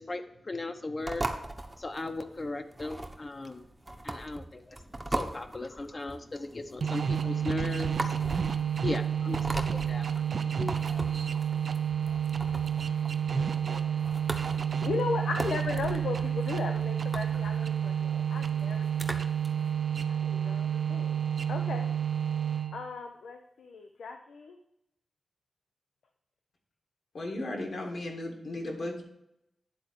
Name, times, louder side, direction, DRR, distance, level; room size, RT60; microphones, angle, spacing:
voice 1, 0.0-1.3 1.8-3.6 4.0-4.8 5.0-10.7, left 2 dB, 40° left, 7 dB, 0.9 m, -37 dB
sound 1, 1.0-19.5, right 1 dB, 20° right, 0.9 m, -39 dB
sound 2, 6.8-22.9, right 8 dB, 70° right, 0.4 m, -30 dB
voice 2, 13.6-14.0 14.3-19.3 20.1-21.2 21.5-21.9 22.7-24.6, left 4 dB, 90° left, 4 dB, 0.6 m, -37 dB
voice 3, 27.1-29.0, left 1 dB, 70° left, 0 dB, 2.2 m, -35 dB
10.0 x 3.8 x 6.5 m, 0.80 s
cardioid pair, 55°, 0 cm